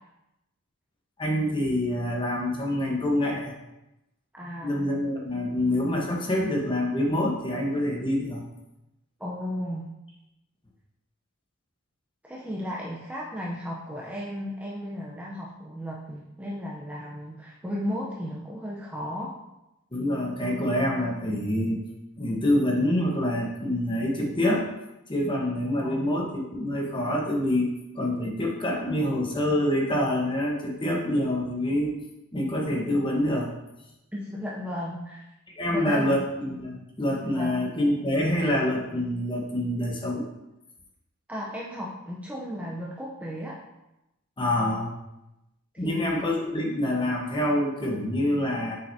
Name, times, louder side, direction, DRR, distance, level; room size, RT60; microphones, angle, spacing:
voice 1, 1.2-3.5 4.6-8.4 19.9-21.8 22.2-24.7 25.1-31.9 32.3-33.5 35.5-40.2 44.4-44.9 45.8-48.8, left 1 dB, 20° left, -1 dB, 1.1 m, -26 dB
voice 2, 4.3-4.9 9.2-9.9 12.2-19.3 25.8-26.1 34.1-35.3 35.7-36.1 37.2-37.5 41.3-43.6 45.8-46.3, equal, 5° right, -4 dB, 0.6 m, -34 dB
6.7 x 5.8 x 2.7 m, 0.93 s
head